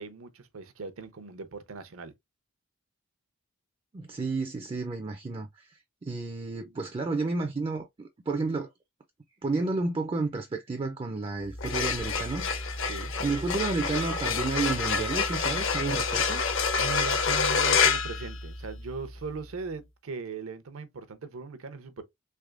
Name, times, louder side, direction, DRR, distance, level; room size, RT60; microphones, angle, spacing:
voice 1, 0.0-2.1 12.9-13.1 16.8-22.0, right 4 dB, 75° right, 0.6 m, -39 dB
voice 2, 3.9-8.7 9.4-12.5 13.2-16.4, right 3 dB, 25° right, 0.3 m, -31 dB
sound 1, 11.5-19.0, left 5 dB, 60° left, 0.6 m, -27 dB
3.4 x 3.2 x 2.4 m
head